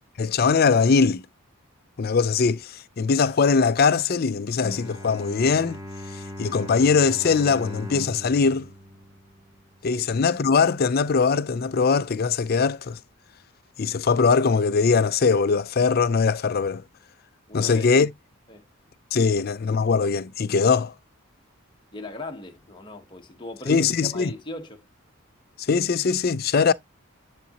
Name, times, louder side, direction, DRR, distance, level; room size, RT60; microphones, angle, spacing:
voice 1, 0.2-1.2 2.0-5.8 6.4-8.7 9.8-13.0 13.8-16.8 17.5-18.1 19.1-20.9 23.7-24.3 25.7-26.7, left 5 dB, 45° left, 0.4 m, -21 dB
Bowed string instrument, 4.6-9.9, equal, 15° right, 0.8 m, -39 dB
voice 2, 17.5-17.9 18.5-18.6 21.9-24.9, left 1 dB, 20° left, 1.0 m, -39 dB
9.9 x 3.9 x 2.9 m
head